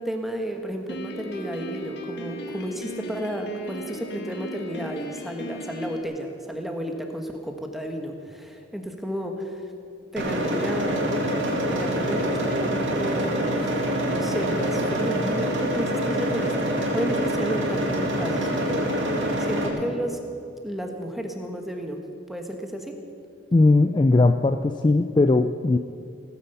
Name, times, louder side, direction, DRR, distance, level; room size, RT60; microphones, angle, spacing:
voice 1, 0.0-9.7 10.1-11.2 11.7-20.2 20.6-22.0 22.3-22.9, equal, ahead, 3 dB, 1.3 m, -32 dB
Piano, 0.9-6.0, equal, 60° left, 1.4 m, -37 dB
sound 1, 10.2-19.7, right 1 dB, 75° right, 2.3 m, -25 dB
voice 2, 23.5-25.8, left 2 dB, 25° left, 8 dB, 0.3 m, -19 dB
17.5 x 9.7 x 6.9 m, 2.5 s
head